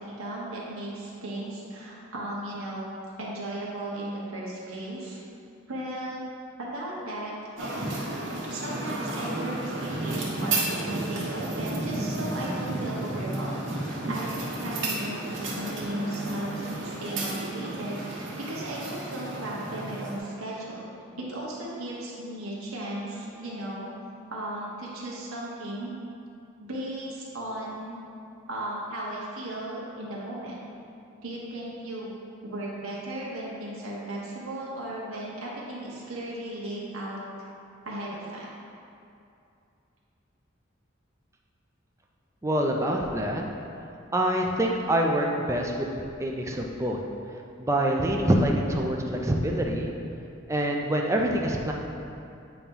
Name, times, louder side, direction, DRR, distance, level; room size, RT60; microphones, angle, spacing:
voice 1, 0.0-2.9 3.2-5.2 5.7-6.2 6.6-7.3 8.4-13.6 13.8-20.9 21.2-23.9 24.3-25.9 26.6-28.0 28.5-30.6 31.2-32.1 32.4-37.2 37.8-38.5, right 1 dB, 90° right, -5 dB, 1.3 m, -36 dB
sound 1, 7.6-20.2, right 2 dB, 60° right, 1.2 m, -32 dB
voice 2, 42.4-43.4 44.1-47.0 47.6-49.9 50.5-51.7, right 1 dB, 15° right, 0 dB, 0.5 m, -25 dB
8.4 x 3.0 x 5.3 m, 2.6 s
head